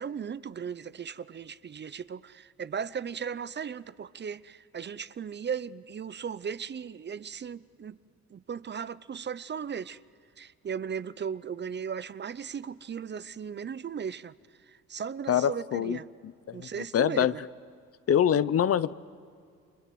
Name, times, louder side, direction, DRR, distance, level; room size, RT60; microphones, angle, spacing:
voice 1, 0.0-8.0 8.3-10.0 10.4-14.3 14.7-16.1 16.5-17.4, right 7 dB, 35° right, 0.6 m, -37 dB
voice 2, 15.3-16.0 16.2-17.3 18.1-18.9, left 9 dB, 50° left, 0.8 m, -25 dB
29.5 x 24.0 x 7.8 m
cardioid pair, 90°, 30 cm